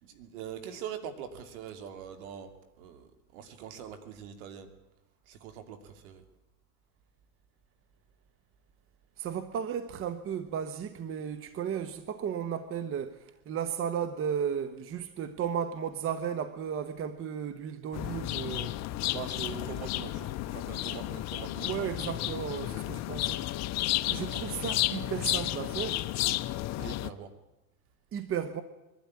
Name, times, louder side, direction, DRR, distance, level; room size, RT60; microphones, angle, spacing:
voice 1, 0.0-2.5 2.8-4.7 5.3-6.2 19.1-21.9 26.8-27.3, right 8 dB, 65° right, 2.9 m, -43 dB
voice 2, 9.2-18.8 21.6-23.5 24.1-26.0 28.1-28.6, right 8 dB, 30° right, 1.1 m, -34 dB
sound 1, 17.9-27.1, left 15 dB, 35° left, 0.8 m, -32 dB
22.0 x 12.0 x 9.7 m
supercardioid pair, 115°, 46 cm